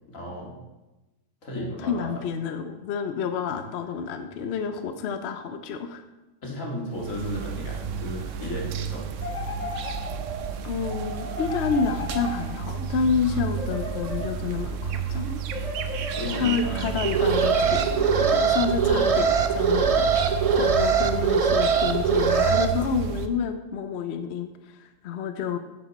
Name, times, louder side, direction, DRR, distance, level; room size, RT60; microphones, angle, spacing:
voice 1, 0.1-0.5 1.4-2.2 6.4-9.1 16.1-17.2, left 1 dB, 80° left, -2 dB, 2.4 m, -34 dB
voice 2, 1.6-6.0 10.6-15.4 16.3-25.6, left 6 dB, 60° left, 8 dB, 0.8 m, -29 dB
sound 1, 6.9-23.3, right 6 dB, 70° right, 1.0 m, -31 dB
sound 2, 9.2-10.5 11.3-12.9 13.5-14.7 15.5-16.7, left 3 dB, 35° left, 1.0 m, -36 dB
Alarm, 17.0-22.7, right 5 dB, 50° right, 0.4 m, -22 dB
9.8 x 6.5 x 4.1 m, 1.1 s
omnidirectional pair, 1.4 m